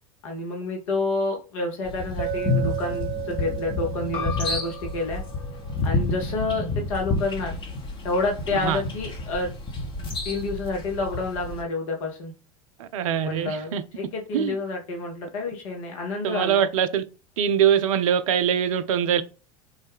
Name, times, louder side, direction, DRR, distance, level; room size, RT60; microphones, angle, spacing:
voice 1, 0.2-5.2 5.8-7.6 8.0-9.5 10.2-12.3 13.2-16.6, left 3 dB, 55° left, 0.7 m, -29 dB
sound 1, 1.8-11.6, left 2 dB, 25° left, 0.8 m, -30 dB
Chink clink, 2.2-6.2, right 12 dB, 35° right, 0.8 m, -35 dB
sound 2, 4.1-9.3, left 5 dB, 40° left, 1.2 m, -42 dB
voice 2, 8.5-8.8 12.8-13.8 14.3-14.6 16.2-17.0 17.4-19.2, right 8 dB, 60° right, 0.4 m, -23 dB
3.5 x 2.1 x 3.4 m
figure-of-eight pair, 80°, 20 cm